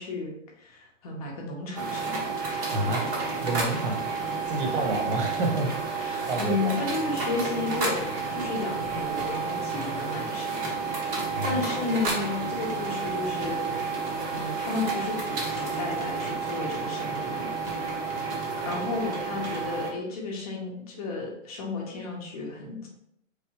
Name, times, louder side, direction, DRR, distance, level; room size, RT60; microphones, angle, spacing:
voice 1, 0.0-2.8 4.6-4.8 6.0-13.6 14.3-17.6 18.6-22.9, left 3 dB, 30° left, -1 dB, 0.9 m, -33 dB
sound 1, 1.7-19.9, right 4 dB, 20° right, 0.8 m, -31 dB
voice 2, 2.7-4.0 4.5-6.9 11.3-11.6, right 2 dB, 45° right, 2 dB, 1.0 m, -30 dB
4.3 x 3.5 x 2.9 m, 0.77 s
hypercardioid pair, 150°, 38 cm